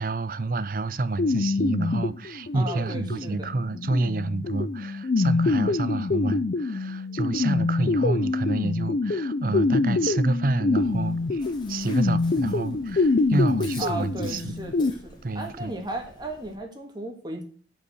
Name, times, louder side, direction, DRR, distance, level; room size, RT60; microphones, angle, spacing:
voice 1, 0.0-11.4 11.7-14.6 15.2-15.7, right 2 dB, 50° right, 0.6 m, -28 dB
sound 1, 1.2-14.9, left 3 dB, 50° left, 0.4 m, -25 dB
voice 2, 2.5-3.6 13.8-17.4, right 1 dB, 25° right, 1.8 m, -35 dB
Chewing mastication, 10.8-16.6, left 2 dB, 25° left, 1.9 m, -48 dB
11.0 x 5.4 x 6.3 m
head